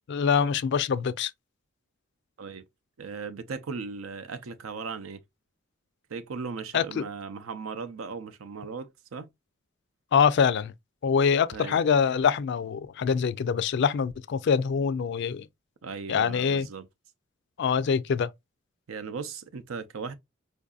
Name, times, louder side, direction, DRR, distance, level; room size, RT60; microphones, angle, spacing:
voice 1, 0.1-1.3 6.7-7.0 10.1-10.7 11.0-15.5 16.1-16.7 17.6-18.3, left 6 dB, 60° left, 0.3 m, -24 dB
voice 2, 3.0-5.2 6.1-9.3 11.5-11.8 15.8-16.9 18.9-20.1, right 5 dB, 90° right, 0.6 m, -37 dB
4.6 x 2.6 x 2.3 m
head